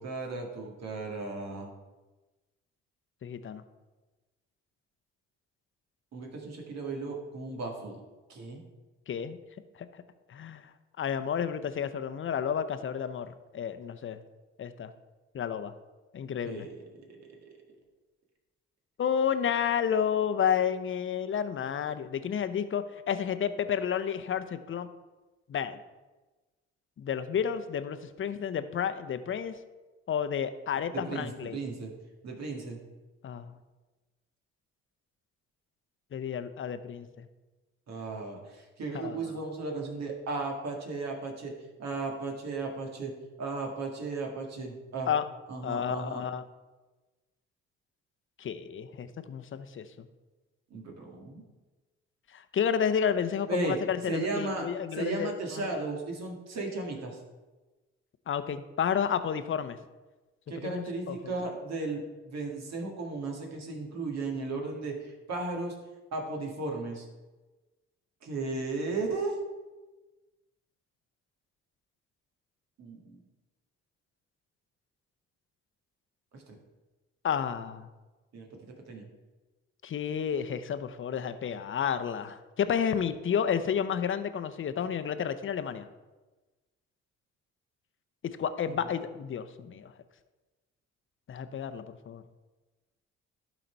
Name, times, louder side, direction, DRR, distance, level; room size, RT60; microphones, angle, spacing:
voice 1, 0.0-1.7 6.1-8.0 8.3-8.6 16.4-17.6 30.9-31.9 32.2-32.8 37.9-43.1 43.4-45.1 45.5-46.2 50.7-51.4 53.5-53.8 54.1-54.7 54.9-57.2 60.5-65.8 66.1-67.1 68.2-69.4 72.8-73.2 76.3-76.6 78.3-79.1 88.7-88.9, right 3 dB, 60° right, 1 dB, 1.9 m, -35 dB
voice 2, 3.2-3.6 9.1-9.4 9.8-10.0 10.3-10.6 11.0-14.2 14.6-14.9 15.3-15.7 16.1-16.7 19.0-24.9 25.5-25.8 27.0-29.6 30.1-31.6 33.2-33.5 36.1-37.2 38.9-39.2 45.1-45.2 45.6-46.4 48.4-50.1 52.3-55.8 58.3-59.8 60.6-61.1 77.2-77.9 79.8-85.9 88.4-89.9 91.3-92.2, left 8 dB, 40° left, 11 dB, 0.7 m, -31 dB
12.0 x 4.1 x 4.5 m, 1.2 s
supercardioid pair, 65°, 30 cm